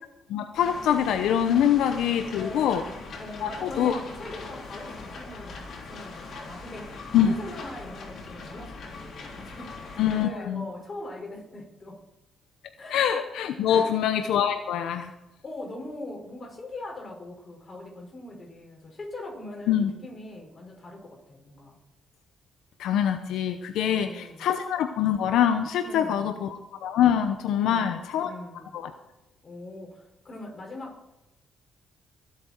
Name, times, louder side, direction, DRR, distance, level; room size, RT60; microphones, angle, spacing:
voice 1, 0.3-2.8 3.4-4.0 7.1-7.3 10.0-10.7 12.9-15.1 19.7-19.9 22.8-28.3 28.7-28.9, left 9 dB, 85° left, 8 dB, 0.7 m, -24 dB
Wnd&Wvs&Msts, 0.5-10.3, left 3 dB, 60° left, 3.7 m, -41 dB
voice 2, 2.3-12.0 12.8-13.0 13.7-14.0 15.4-21.8 23.8-24.5 25.8-26.5 27.6-28.7 29.4-31.1, left 2 dB, 35° left, 0 dB, 5.8 m, -41 dB
23.0 x 8.3 x 4.5 m, 0.96 s
cardioid pair, 90°, 0 cm